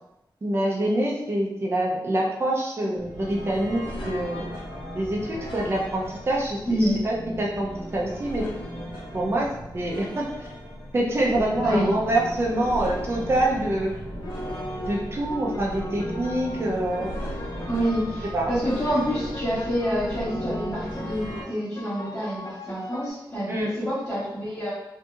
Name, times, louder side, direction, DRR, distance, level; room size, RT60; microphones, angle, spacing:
voice 1, 0.4-4.4 4.9-8.4 9.1-10.5 10.9-13.9 14.9-17.1 18.3-18.5 23.5-23.7, right 1 dB, 30° right, -3 dB, 0.4 m, -26 dB
sound 1, 3.0-21.4, equal, 85° left, 0.9 m, -36 dB
voice 2, 6.7-7.0 11.6-11.9 17.7-24.7, equal, 30° left, -15 dB, 1.2 m, -27 dB
sound 2, 14.2-23.1, left 1 dB, 50° left, 0.3 m, -39 dB
2.7 x 2.6 x 2.3 m, 0.90 s
wide cardioid pair, 150°, 8 cm